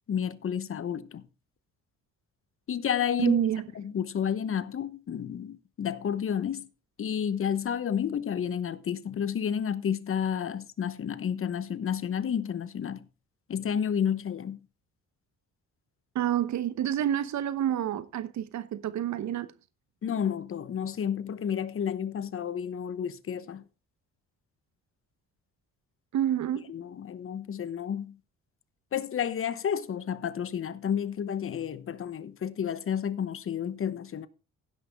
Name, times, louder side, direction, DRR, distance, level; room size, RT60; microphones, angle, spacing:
voice 1, 0.1-1.2 2.7-3.4 3.8-6.7 7.0-13.0 13.5-14.6 20.0-23.6 26.7-28.2 28.9-34.3, left 8 dB, 45° left, 1.0 m, -31 dB
voice 2, 3.2-3.6 16.1-19.5 26.1-26.7, right 11 dB, 65° right, 1.0 m, -28 dB
16.0 x 6.1 x 3.5 m
cardioid pair, 90°, 30 cm